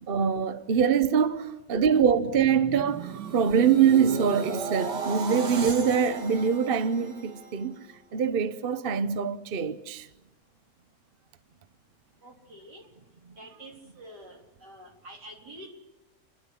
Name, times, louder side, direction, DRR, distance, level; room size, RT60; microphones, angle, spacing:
voice 1, 0.1-7.8 8.1-10.1, right 7 dB, 45° right, 0.8 m, -24 dB
sound 1, 1.7-7.9 8.4-8.7, right 5 dB, 90° right, 2.3 m, -36 dB
voice 2, 12.2-12.8 13.4-15.7, right 1 dB, 75° right, 4.4 m, -47 dB
29.5 x 11.5 x 9.9 m
omnidirectional pair, 1.8 m